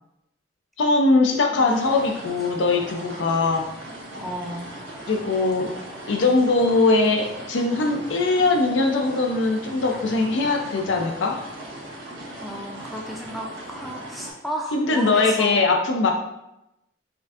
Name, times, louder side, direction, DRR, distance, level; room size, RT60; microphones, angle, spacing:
voice 1, 0.8-3.6 5.1-5.7 6.1-11.4 14.7-16.1, left 3 dB, 75° left, 2 dB, 0.4 m, -21 dB
sound 1, 1.7-14.3, right 1 dB, 80° right, 1.0 m, -38 dB
voice 2, 4.2-4.7 12.4-15.7, equal, ahead, -1 dB, 0.4 m, -33 dB
4.3 x 2.6 x 2.4 m, 0.86 s
head